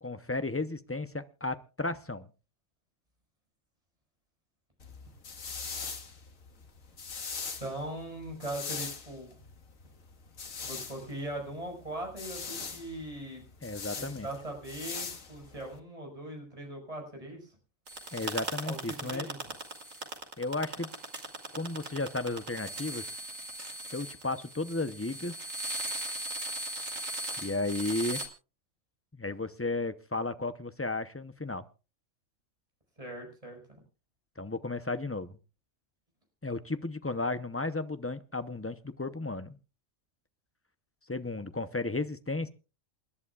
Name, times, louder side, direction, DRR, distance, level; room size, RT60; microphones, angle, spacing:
voice 1, 0.0-2.3 13.6-14.3 18.1-19.3 20.4-20.9 21.5-23.0 23.9-25.3 27.4-28.2 29.1-31.7 34.4-35.4 36.4-39.6 41.1-42.5, left 2 dB, 20° left, 11 dB, 0.4 m, -34 dB
sound 1, 4.8-15.8, left 5 dB, 75° left, 2.0 m, -41 dB
voice 2, 7.6-9.3 10.6-13.4 14.0-17.6 18.7-19.4 33.0-33.8, right 1 dB, 25° right, 2 dB, 5.7 m, -40 dB
sound 2, 17.9-28.3, right 1 dB, 70° right, 3.1 m, -38 dB
28.5 x 11.0 x 2.3 m, 0.32 s
omnidirectional pair, 1.4 m